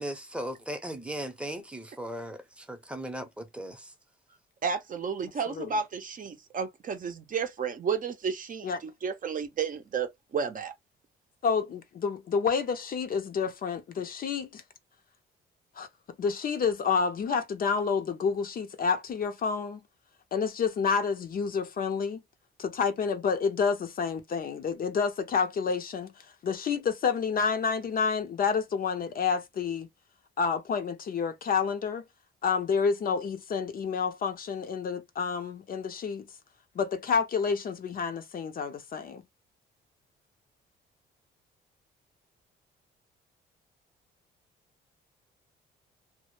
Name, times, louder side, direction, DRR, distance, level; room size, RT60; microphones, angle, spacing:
voice 1, 0.0-3.9, right 1 dB, 5° right, 0.7 m, -37 dB
voice 2, 4.6-10.7, right 6 dB, 45° right, 0.6 m, -32 dB
voice 3, 11.4-14.6 15.8-15.9 16.2-19.8 20.3-22.2 22.6-26.1 26.4-29.9 30.4-32.1 32.4-36.3 36.8-39.2, left 5 dB, 45° left, 0.5 m, -29 dB
2.1 x 2.0 x 3.0 m
cardioid pair, 90°, 20 cm